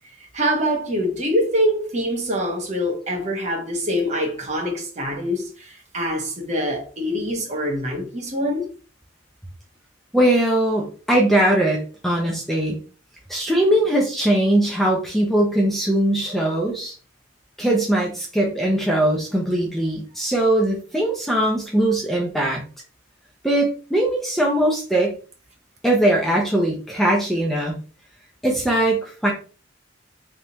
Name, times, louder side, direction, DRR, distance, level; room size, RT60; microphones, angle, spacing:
voice 1, 0.3-8.7, equal, 35° right, 1.1 m, -24 dB
voice 2, 10.1-12.8 13.3-16.9 17.6-22.6 23.4-25.1 25.8-27.7 28.4-29.3, right 1 dB, ahead, 0.7 m, -20 dB
3.8 x 3.5 x 2.9 m
head